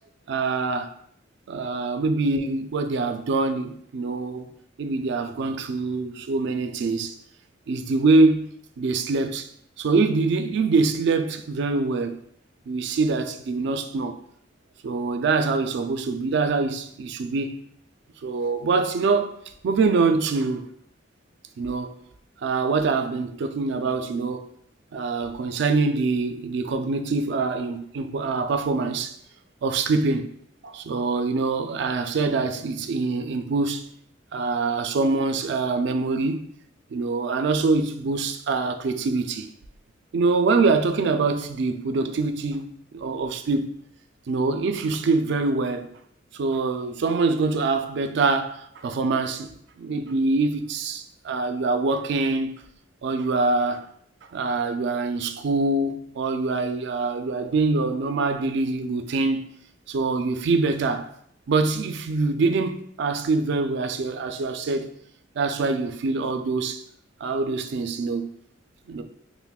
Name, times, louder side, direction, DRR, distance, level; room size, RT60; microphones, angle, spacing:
voice 1, 0.3-0.9 1.5-4.5 4.8-7.1 7.7-8.5 8.8-9.5 9.8-12.2 12.7-14.2 14.8-17.6 18.2-20.7 21.6-22.0 22.4-24.5 24.9-29.2 29.6-30.3 30.6-33.9 34.3-36.5 36.9-39.5 40.1-43.8 44.3-46.0 46.4-49.5 49.8-52.5 53.0-53.9 54.3-59.5 59.9-61.1 61.5-64.9 65.4-66.8 67.2-68.3 68.9-69.0, right 3 dB, 65° right, 0.3 m, -24 dB
5.6 x 2.1 x 2.3 m
head